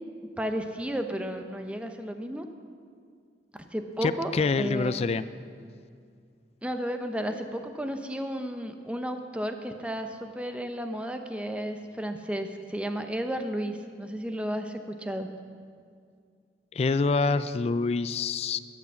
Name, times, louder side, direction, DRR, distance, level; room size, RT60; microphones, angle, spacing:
voice 1, 0.4-2.5 3.7-5.0 6.6-15.3, equal, 5° right, 6 dB, 0.7 m, -33 dB
voice 2, 4.0-5.2 16.7-18.6, left 4 dB, 35° left, 14 dB, 0.3 m, -26 dB
12.0 x 8.7 x 7.1 m, 2.2 s
head